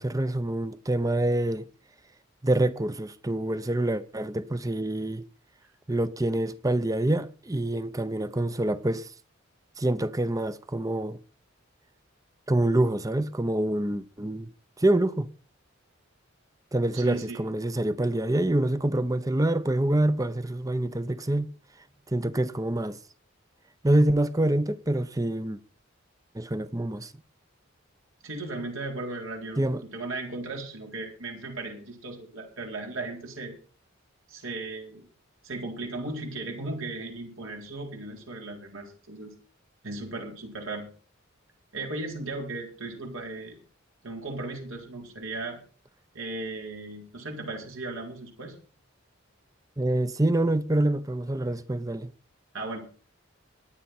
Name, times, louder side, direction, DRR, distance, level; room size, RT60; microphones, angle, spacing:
voice 1, 0.0-1.6 2.4-5.2 5.9-9.1 9.8-11.2 12.5-14.5 14.8-15.3 16.7-21.5 22.1-23.0 23.8-25.6 26.3-27.1 29.6-29.8 49.8-52.1, right 1 dB, 15° right, 0.7 m, -26 dB
voice 2, 16.9-17.4 28.2-33.5 34.3-35.1 35.4-39.3 39.8-40.9 41.7-43.6 44.0-45.6 46.1-48.6 52.5-52.8, right 2 dB, 80° right, 4.1 m, -36 dB
23.0 x 8.7 x 4.3 m
head